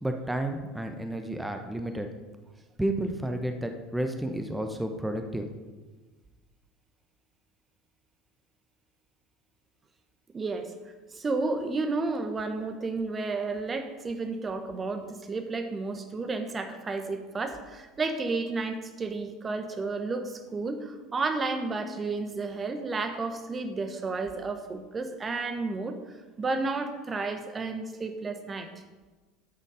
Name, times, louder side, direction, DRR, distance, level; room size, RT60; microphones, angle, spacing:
voice 1, 0.0-2.1 2.8-5.5, right 1 dB, 5° right, 6 dB, 1.1 m, -31 dB
voice 2, 10.3-10.7 11.1-28.7, right 3 dB, 25° right, 7 dB, 1.3 m, -32 dB
11.5 x 8.2 x 5.0 m, 1.3 s
figure-of-eight pair, 70°, 0 cm